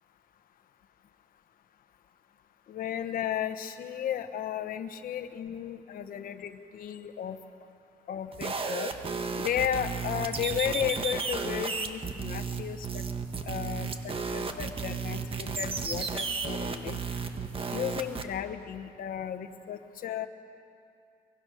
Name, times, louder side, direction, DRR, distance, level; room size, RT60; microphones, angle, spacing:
voice 1, 2.7-7.4 8.1-8.9 9.4-13.0 13.5-17.0 17.7-20.3, left 9 dB, 70° left, 6 dB, 1.1 m, -34 dB
sound 1, 8.3-18.2, right 5 dB, 35° right, 1.5 m, -33 dB
23.0 x 22.0 x 6.4 m, 2.5 s
cardioid pair, 105°, 15 cm